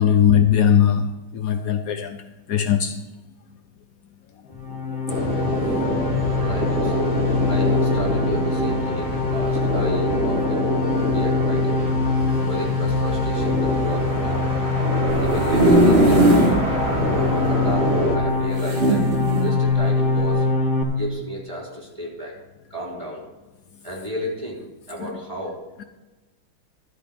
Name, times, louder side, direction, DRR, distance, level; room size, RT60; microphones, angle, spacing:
voice 1, 0.0-3.0 4.9-5.0 5.9-6.1 16.8-16.9 25.0-25.2 25.8-25.9, left 9 dB, 90° left, 0.7 m, -20 dB
voice 2, 4.5-5.1 6.3-7.2 7.5-10.7 11.0-11.9 12.5-14.5 15.2-16.8 17.4-20.6 20.9-22.3 22.7-23.2 23.8-24.6 24.9-25.6, equal, 15° right, 3.9 m, -33 dB
sound 1, 4.6-20.8, left 3 dB, 30° left, 1.3 m, -24 dB
sound 2, 5.1-18.2, right 1 dB, 50° right, 3.2 m, -26 dB
sound 3, 15.1-16.6 17.1-17.2 17.4-17.5 18.6-19.5 20.2-20.4, right 1 dB, 30° right, 1.6 m, -18 dB
13.0 x 5.0 x 8.5 m
omnidirectional pair, 2.3 m